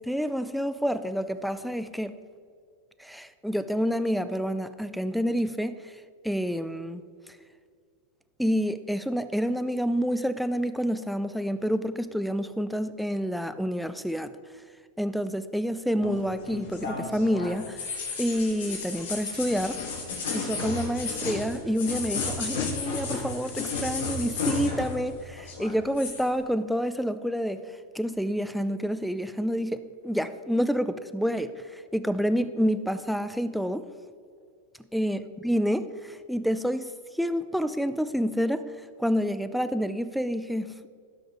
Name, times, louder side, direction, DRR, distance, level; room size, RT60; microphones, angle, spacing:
voice 1, 0.0-2.1 3.0-7.0 8.4-14.3 15.0-17.8 18.2-19.8 20.3-27.6 27.9-33.9 34.9-38.7 39.0-40.9, equal, ahead, 11 dB, 0.5 m, -28 dB
sound 1, 16.0-25.1 25.4-26.2, left 4 dB, 70° left, 2.7 m, -33 dB
16.0 x 6.2 x 3.6 m, 2.1 s
hypercardioid pair, 100°, 0 cm